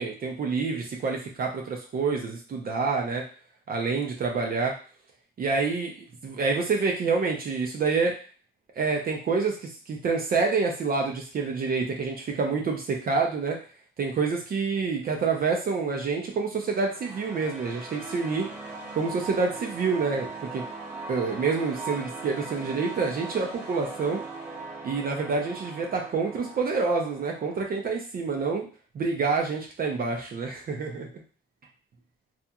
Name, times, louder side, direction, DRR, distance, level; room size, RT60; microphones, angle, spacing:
voice 1, 0.0-3.2 3.7-4.8 5.4-8.2 8.8-13.6 14.0-18.5 18.9-20.6 21.1-24.2 24.8-28.7 28.9-31.1, right 4 dB, 50° right, 1 dB, 0.6 m, -27 dB
sound 1, 16.6-27.7, right 3 dB, 10° right, 1.1 m, -40 dB
2.8 x 2.4 x 2.3 m, 0.38 s
cardioid pair, 90°, 20 cm